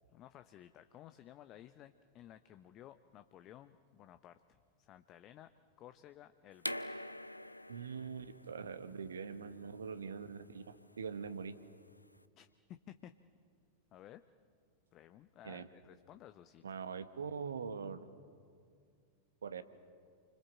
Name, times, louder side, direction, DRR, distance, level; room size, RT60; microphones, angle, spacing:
voice 1, 0.1-5.5 5.8-6.7 12.4-13.1 13.9-14.2 14.9-16.6, left 12 dB, 35° left, 10 dB, 0.9 m, -56 dB
sound 1, 6.6-12.2, left 1 dB, 85° left, 0.7 m, -46 dB
voice 2, 7.7-11.5 15.4-15.7 16.6-18.1 19.4-19.6, right 6 dB, 70° right, 11 dB, 1.4 m, -43 dB
29.5 x 25.0 x 7.5 m, 2.2 s
figure-of-eight pair, 90°, 0 cm